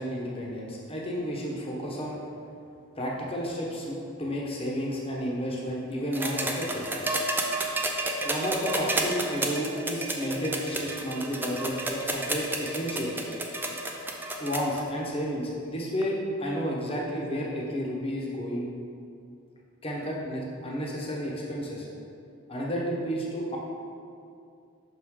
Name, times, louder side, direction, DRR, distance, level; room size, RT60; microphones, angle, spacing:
voice 1, 0.0-2.2 2.9-6.9 8.2-13.2 14.4-18.7 19.8-21.9 22.5-23.6, equal, 30° left, -3 dB, 0.9 m, -31 dB
sound 1, 6.1-14.8 16.0-16.1, right 2 dB, 10° right, 0.4 m, -30 dB
5.8 x 4.7 x 3.7 m, 2.4 s
head